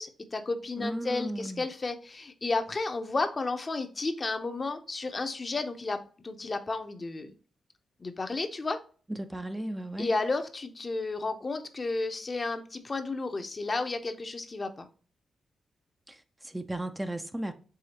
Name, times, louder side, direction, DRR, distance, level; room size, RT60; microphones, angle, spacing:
voice 1, 0.0-7.3 8.0-8.8 10.0-14.9, left 3 dB, 40° left, 0.7 m, -32 dB
voice 2, 0.8-1.6 9.1-10.1 16.1-17.5, right 1 dB, 15° right, 0.5 m, -35 dB
4.9 x 3.4 x 2.9 m
cardioid pair, 65°, 0 cm